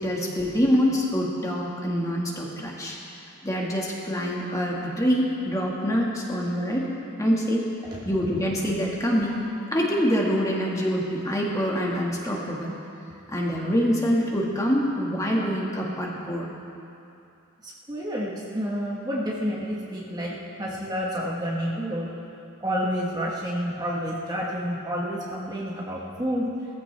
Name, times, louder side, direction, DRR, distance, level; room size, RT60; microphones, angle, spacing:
voice 1, 0.0-3.0 3.4-6.9 7.2-7.7 8.0-9.4 9.7-12.7 13.3-16.5, equal, 15° left, -3 dB, 1.8 m, -25 dB
voice 2, 17.6-22.1 22.6-26.5, equal, 20° right, -4 dB, 1.3 m, -29 dB
19.5 x 14.5 x 3.4 m, 2.7 s
head